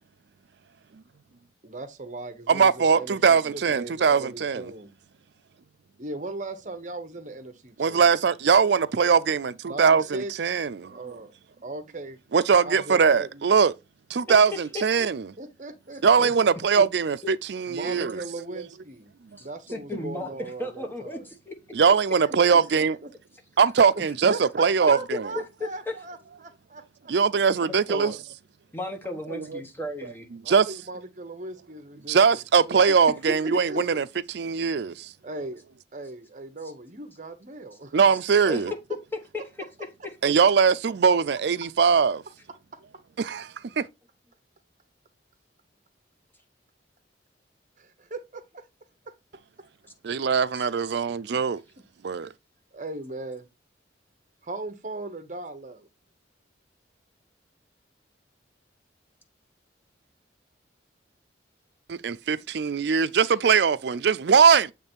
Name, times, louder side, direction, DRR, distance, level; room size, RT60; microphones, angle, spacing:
voice 1, 1.6-4.9 6.0-8.0 9.7-10.6 10.9-11.3 11.6-12.2 12.6-13.5 15.4-16.3 17.7-19.1 19.4-21.3 22.2-23.1 23.9-27.1 30.4-32.8 33.7-33.8 35.2-35.6 35.9-38.0 38.4-38.5 47.8-48.6 49.1-49.2 52.7-53.5 54.4-55.9, right 2 dB, 40° right, 1.0 m, -38 dB
voice 2, 2.5-4.7 7.8-11.0 12.3-13.7 14.1-15.3 16.0-18.2 18.6-18.7 21.7-23.0 23.6-25.3 27.1-28.1 29.3-29.6 30.5-30.7 32.1-35.1 37.9-38.7 40.2-42.2 43.2-43.9 50.0-51.6 52.0-52.3 61.9-64.7, right 6 dB, 60° right, 0.4 m, -21 dB
voice 3, 19.4-21.5 25.6-25.7 27.6-28.1 28.7-30.3 32.9-33.0 33.3-33.4 38.5-38.6 39.3-39.4 50.5-50.6, left 1 dB, 10° left, 1.0 m, -34 dB
8.4 x 3.2 x 4.4 m
head